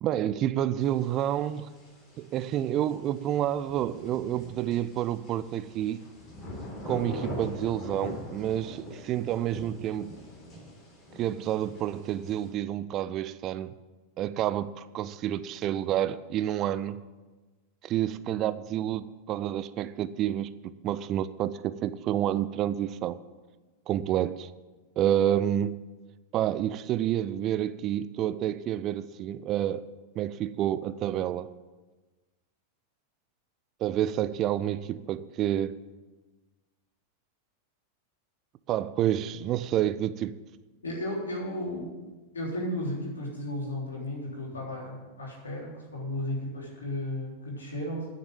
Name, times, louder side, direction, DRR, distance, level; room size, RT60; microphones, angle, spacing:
voice 1, 0.0-1.7 2.2-6.0 6.9-10.1 11.2-13.7 14.2-17.0 17.8-23.2 23.9-24.5 25.0-25.8 26.3-29.8 30.2-31.5 33.8-35.8 38.7-40.4, right 11 dB, 35° right, 0.4 m, -29 dB
sound 1, 0.8-12.5, left 1 dB, 30° left, 3.8 m, -43 dB
voice 2, 40.8-41.9 42.3-48.1, left 1 dB, 70° left, 3.5 m, -34 dB
9.7 x 6.6 x 8.8 m
figure-of-eight pair, 90°, 0 cm